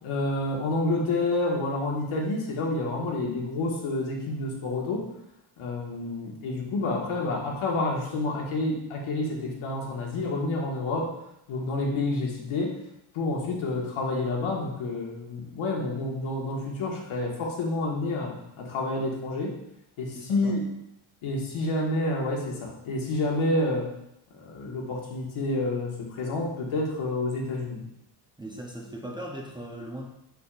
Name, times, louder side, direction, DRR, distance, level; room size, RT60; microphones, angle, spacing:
voice 1, 0.0-5.1 5.6-11.1 11.5-12.7 13.1-19.6 20.0-20.6 21.2-23.9 24.4-27.8, left 2 dB, 75° left, -1 dB, 1.7 m, -29 dB
voice 2, 20.1-20.6 28.4-30.1, right 1 dB, 10° right, -1 dB, 0.6 m, -39 dB
6.9 x 6.7 x 2.5 m, 0.82 s
cardioid pair, 160°, 49 cm